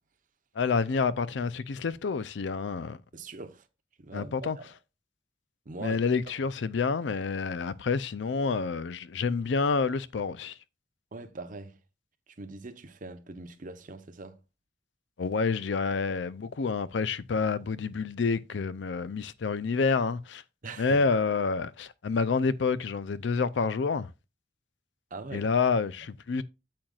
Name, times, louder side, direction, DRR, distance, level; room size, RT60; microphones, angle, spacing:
voice 1, 0.6-3.0 4.1-4.6 5.8-10.6 15.2-20.4 20.8-24.1 25.3-26.4, left 4 dB, 75° left, 0.5 m, -28 dB
voice 2, 3.1-3.7 4.0-4.7 5.6-6.0 11.1-11.8 12.3-14.4 20.6-21.0 25.1-25.5, right 3 dB, 45° right, 0.9 m, -42 dB
8.7 x 7.6 x 2.4 m
head